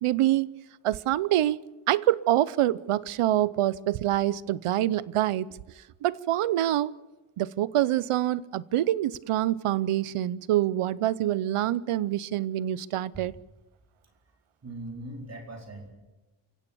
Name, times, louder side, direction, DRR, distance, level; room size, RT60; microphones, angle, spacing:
voice 1, 0.0-0.5 0.8-1.6 1.9-5.5 6.0-6.9 7.4-13.3, right 13 dB, 90° right, 20 dB, 0.8 m, -25 dB
voice 2, 14.6-15.9, right 1 dB, 30° right, 2 dB, 4.3 m, -40 dB
28.5 x 16.0 x 6.9 m, 1.1 s
wide cardioid pair, 175°, 49 cm